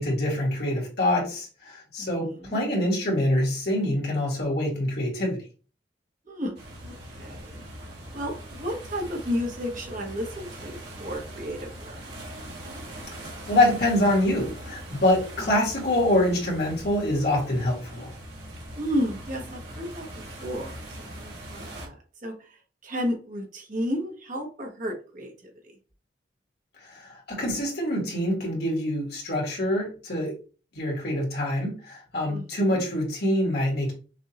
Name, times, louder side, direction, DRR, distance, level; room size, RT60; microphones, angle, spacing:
voice 1, 0.0-5.4 13.5-18.1 26.9-30.3 30.7-33.9, left 1 dB, 60° left, -2 dB, 2.0 m, -25 dB
voice 2, 2.0-2.6 6.3-6.6 6.8-7.6 8.1-12.0 15.4-15.6 18.8-21.9 22.2-25.7 32.3-32.6, equal, 45° right, 0 dB, 1.2 m, -33 dB
sound 1, 6.6-21.9, right 1 dB, 75° right, 1.7 m, -41 dB
6.1 x 2.6 x 2.9 m, 0.37 s
head